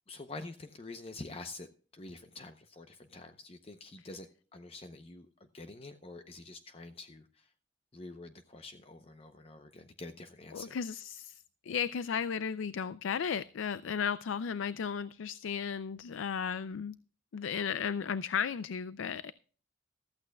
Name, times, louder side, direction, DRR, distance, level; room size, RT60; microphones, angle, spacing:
voice 1, 0.1-7.5 7.9-10.8, left 2 dB, 30° left, 8 dB, 0.6 m, -47 dB
voice 2, 10.5-11.4 11.7-17.0 17.3-19.3, left 7 dB, 90° left, 16 dB, 0.4 m, -34 dB
14.5 x 14.0 x 2.2 m, 0.41 s
head